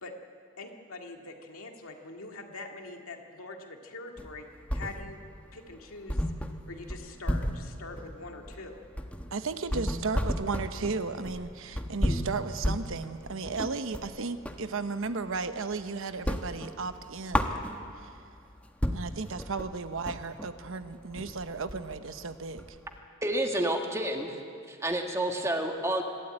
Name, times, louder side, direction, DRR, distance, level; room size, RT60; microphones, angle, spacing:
voice 1, 0.6-4.5 4.7-5.2 5.5-8.8, left 3 dB, 75° left, 2 dB, 2.2 m, -44 dB
sound 1, 4.2-5.3 5.6-5.7 6.1-14.7 15.1-15.8 16.1-18.1 18.5-18.6 18.8-23.0, equal, 5° left, 1.1 m, -33 dB
voice 2, 9.3-17.5 18.0-18.1 18.9-22.8, right 4 dB, 70° right, 10 dB, 0.9 m, -35 dB
voice 3, 23.2-24.4 24.7-26.0, right 1 dB, 15° right, 3 dB, 1.7 m, -29 dB
25.0 x 12.5 x 9.0 m, 2.4 s
head